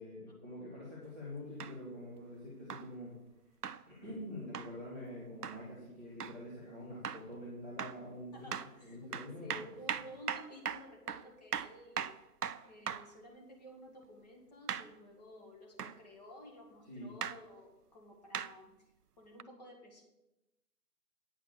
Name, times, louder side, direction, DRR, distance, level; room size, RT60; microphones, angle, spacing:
voice 1, 0.0-3.2 3.9-8.3 8.8-9.7 16.9-17.1, left 1 dB, 10° left, -10 dB, 1.2 m, -46 dB
sound 1, 1.6-1.8 2.7-2.9 3.6-3.8 4.5-4.7 5.4-5.6 6.2-6.4 7.0-7.3 7.8-8.0 8.5-8.7 9.1-13.1 14.7-14.9 15.8-16.0 17.2-17.4 18.3-18.5 19.4-19.5, right 8 dB, 80° right, 0.6 m, -39 dB
voice 2, 8.3-9.1 9.4-12.1 12.6-18.7 19.2-20.0, equal, 25° left, 0 dB, 1.9 m, -53 dB
9.2 x 6.2 x 6.5 m, 0.94 s
figure-of-eight pair, 160°, 46 cm